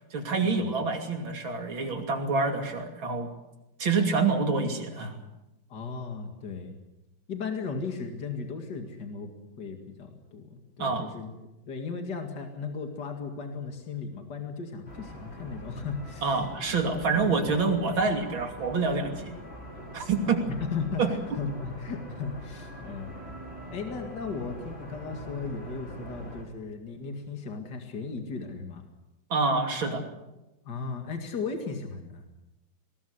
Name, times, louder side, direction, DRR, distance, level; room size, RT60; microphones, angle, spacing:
voice 1, 0.1-3.3 3.8-5.2 10.8-11.1 16.2-19.3 19.9-20.4 21.0-21.4 29.3-30.0, right 4 dB, 85° right, 4 dB, 3.6 m, -27 dB
voice 2, 5.7-6.8 7.3-9.3 9.6-11.3 11.7-16.4 17.1-17.3 20.5-23.1 23.7-28.8 30.6-32.3, left 5 dB, 60° left, 4 dB, 2.7 m, -36 dB
sound 1, 14.9-26.4, right 1 dB, 30° left, 4.8 m, -43 dB
22.0 x 19.0 x 8.1 m, 0.98 s
omnidirectional pair, 2.1 m